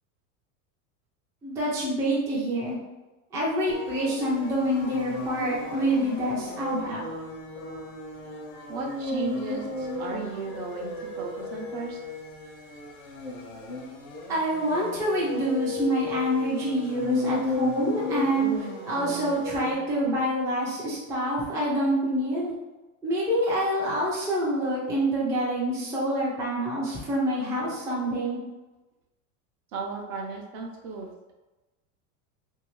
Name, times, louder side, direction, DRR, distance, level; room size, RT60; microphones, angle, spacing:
voice 1, 1.4-2.8 3.3-7.1 14.3-22.5 23.0-28.4, right 1 dB, 10° right, -7 dB, 0.4 m, -27 dB
sound 1, 3.7-20.3, left 2 dB, 80° left, 0.9 m, -34 dB
voice 2, 8.7-12.0 29.7-31.1, right 4 dB, 50° right, 1 dB, 0.6 m, -35 dB
2.7 x 2.7 x 3.0 m, 1.1 s
supercardioid pair, 150°, 41 cm